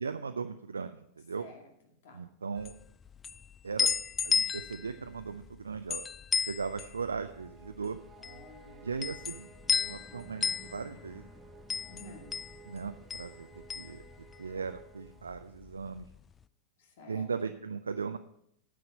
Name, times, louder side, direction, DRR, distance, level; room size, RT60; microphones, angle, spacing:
voice 1, 0.0-1.5 2.1-2.7 3.6-3.9 4.2-6.0 6.4-8.0 8.8-9.5 9.8-11.3 12.7-14.0 14.4-16.1 17.1-18.2, right 5 dB, 75° right, 8 dB, 0.5 m, -38 dB
voice 2, 1.4-1.7 2.0-2.2 8.2-8.9 11.9-12.3 16.8-17.6, left 2 dB, 55° left, 3 dB, 2.4 m, -51 dB
sound 1, 2.6-14.8 15.1-16.2, left 6 dB, 20° left, 0.3 m, -34 dB
sound 2, 7.3-15.7, right 4 dB, 10° right, 1.7 m, -55 dB
9.6 x 7.7 x 6.6 m, 0.74 s
figure-of-eight pair, 90°, 0 cm